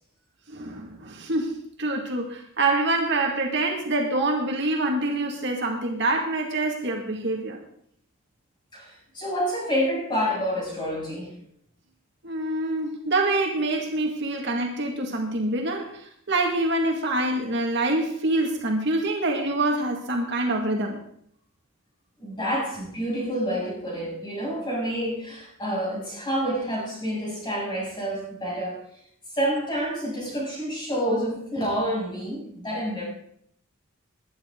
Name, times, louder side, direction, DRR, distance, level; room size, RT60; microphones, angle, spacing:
voice 1, 0.5-7.6 12.2-21.0, right 2 dB, 55° right, 1 dB, 2.0 m, -26 dB
voice 2, 8.7-11.3 22.2-28.8 29.3-33.0, equal, 20° left, -5 dB, 7.3 m, -28 dB
20.5 x 10.5 x 3.8 m, 0.67 s
head